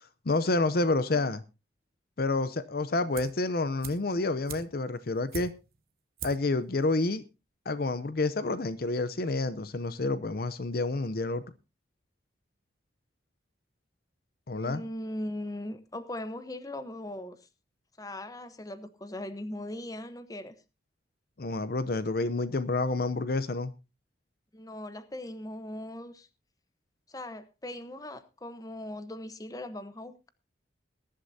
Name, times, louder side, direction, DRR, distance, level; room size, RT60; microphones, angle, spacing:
voice 1, 0.3-1.4 2.2-5.5 6.2-7.2 7.7-11.4 14.5-14.8 21.4-23.7, left 2 dB, 50° left, 0.6 m, -29 dB
sound 1, 3.1-3.5 3.8-5.8 6.2-6.6 6.8-6.9, right 6 dB, 50° right, 1.3 m, -42 dB
voice 2, 14.5-17.5 18.0-20.5 24.5-26.3 27.1-30.3, left 1 dB, 20° left, 0.9 m, -39 dB
20.5 x 11.5 x 2.7 m
head